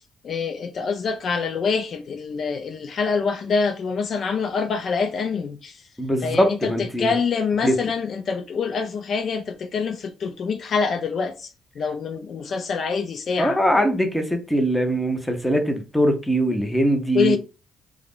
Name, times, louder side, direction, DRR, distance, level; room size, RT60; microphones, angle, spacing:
voice 1, 0.2-5.8 6.2-13.6 17.1-17.4, left 5 dB, 55° left, 0.3 m, -25 dB
voice 2, 6.0-7.1 7.6-7.7 13.4-17.4, equal, 10° left, 0.7 m, -21 dB
2.3 x 2.0 x 3.5 m
cardioid pair, 90°, 0 cm